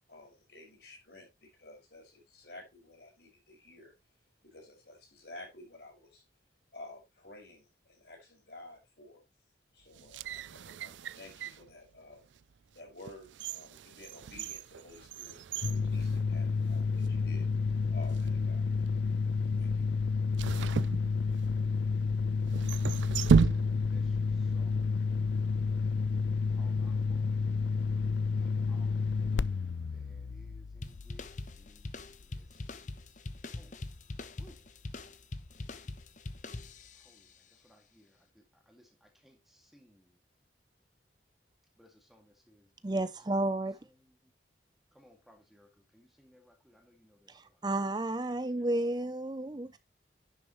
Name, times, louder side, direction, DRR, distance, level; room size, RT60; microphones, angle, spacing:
voice 1, 0.1-3.9 4.4-6.3 6.7-9.2 9.7-12.3 12.7-17.5 17.9-18.7 19.6-19.8, left 2 dB, 60° left, 5.5 m, -52 dB
sound 1, 9.9-11.7 12.3-12.4 13.0-16.8 17.0-17.1 18.0-18.4 20.3-21.7 22.5-24.1 24.3-24.4, right 5 dB, 85° right, 0.4 m, -32 dB
sound 2, 15.6-32.0, left 4 dB, 80° left, 0.4 m, -30 dB
voice 2, 23.4-25.0 26.5-27.5 28.4-29.2 29.9-32.6 32.9-33.2 33.5-33.9 34.4-34.7 37.0-40.2 41.8-44.3 44.9-47.6 48.3-49.1 49.4-49.8, left 1 dB, ahead, 2.1 m, -63 dB
sound 3, 30.8-37.2, left 2 dB, 40° left, 0.8 m, -43 dB
voice 3, 42.8-43.8 47.3-49.8, right 2 dB, 25° right, 0.5 m, -32 dB
10.5 x 6.8 x 3.1 m
head